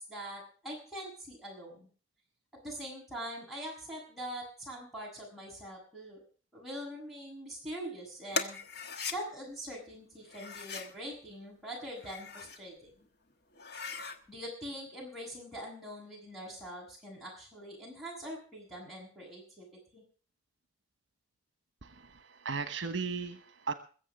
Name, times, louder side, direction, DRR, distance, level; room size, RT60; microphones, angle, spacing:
voice 1, 0.1-1.9 2.6-6.2 6.5-8.6 9.1-13.1 14.3-19.7 19.9-20.0, equal, ahead, -4 dB, 7.6 m, -43 dB
sound 1, 8.3-9.2 10.3-10.9 11.8-12.6 13.0-13.1 13.5-14.2, left 4 dB, 55° left, 1.3 m, -38 dB
voice 2, 21.8-23.7, right 4 dB, 70° right, 10 dB, 1.1 m, -37 dB
21.5 x 7.6 x 6.2 m, 0.40 s
head